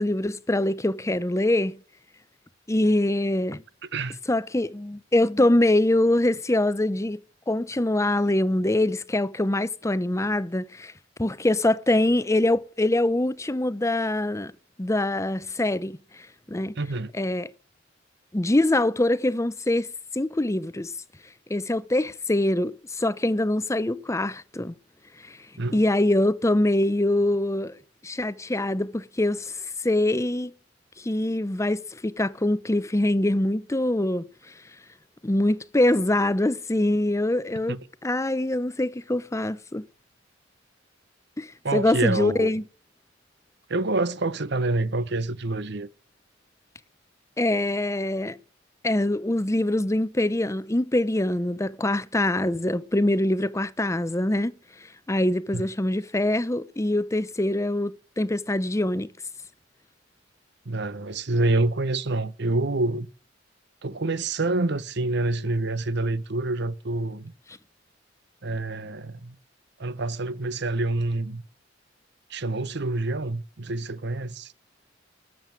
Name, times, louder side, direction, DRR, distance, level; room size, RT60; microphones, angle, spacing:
voice 1, 0.0-1.8 2.7-3.6 4.3-7.2 7.5-10.9 11.2-14.5 14.8-16.0 16.5-16.7 17.2-17.5 18.3-19.9 20.1-20.9 21.5-24.7 25.2-25.4 25.7-27.8 28.0-29.6 29.8-30.5 31.0-34.3 35.2-39.8 41.4-42.6 47.4-48.4 48.8-54.5 55.1-59.1, left 1 dB, 15° left, 0.7 m, -24 dB
voice 2, 16.8-17.1 25.6-25.8 37.7-37.8 41.6-42.5 43.7-45.9 55.5-55.7 60.7-63.1 63.8-67.3 68.4-69.3 69.8-71.4 72.3-74.5, right 2 dB, 60° right, 1.0 m, -27 dB
13.0 x 7.7 x 9.2 m
head